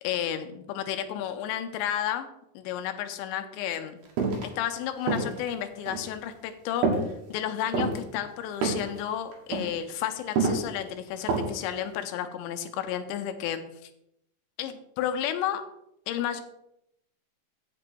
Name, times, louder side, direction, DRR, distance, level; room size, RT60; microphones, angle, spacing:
voice 1, 0.0-2.3 2.6-4.0 4.4-6.9 7.3-13.6 14.6-15.6 16.1-16.4, left 10 dB, 85° left, 9 dB, 3.1 m, -32 dB
sound 1, 4.2-4.5 5.0-5.4 5.9-6.1 6.8-7.1 7.6-8.0 8.6-9.0 9.3-9.7 10.3-10.7 11.2-11.6 11.9-12.0, right 4 dB, 65° right, 3.3 m, -26 dB
8.5 x 8.1 x 4.4 m, 0.78 s
omnidirectional pair, 5.2 m